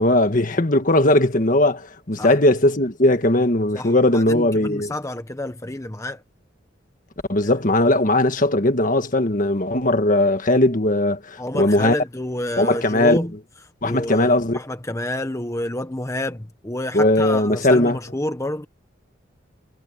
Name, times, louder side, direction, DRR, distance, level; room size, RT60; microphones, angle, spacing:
voice 1, 0.0-4.9 7.3-12.0 12.6-13.2 13.8-14.6 16.9-18.0, left 1 dB, 45° left, 1.6 m, -18 dB
voice 2, 3.7-6.2 11.4-13.3 13.8-18.6, left 1 dB, 15° left, 1.2 m, -29 dB
head